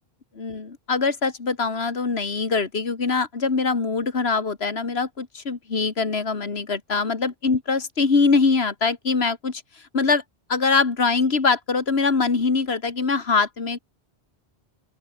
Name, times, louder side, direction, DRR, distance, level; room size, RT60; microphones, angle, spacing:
voice 1, 0.4-10.2 10.5-13.8, left 4 dB, 80° left, 2.3 m, -23 dB
open air
omnidirectional pair, 1.0 m